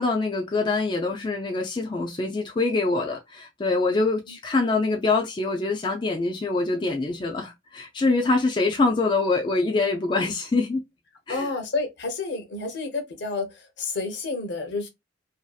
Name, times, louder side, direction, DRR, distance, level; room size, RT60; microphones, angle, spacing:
voice 1, 0.0-10.8 11.3-11.5, left 3 dB, 25° left, 0.4 m, -24 dB
voice 2, 11.3-14.9, left 3 dB, 65° left, 0.8 m, -30 dB
2.6 x 2.3 x 2.3 m
head